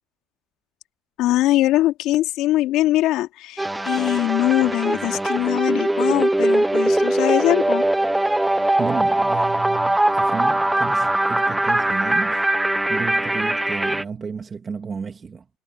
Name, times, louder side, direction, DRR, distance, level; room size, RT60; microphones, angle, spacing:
voice 1, 1.2-7.8, left 15 dB, 65° left, 3.9 m, -21 dB
sound 1, 3.6-14.0, right 1 dB, 5° right, 0.9 m, -21 dB
voice 2, 8.8-12.5 12.9-15.4, right 5 dB, 25° right, 2.6 m, -32 dB
cardioid pair, 125°, 0 cm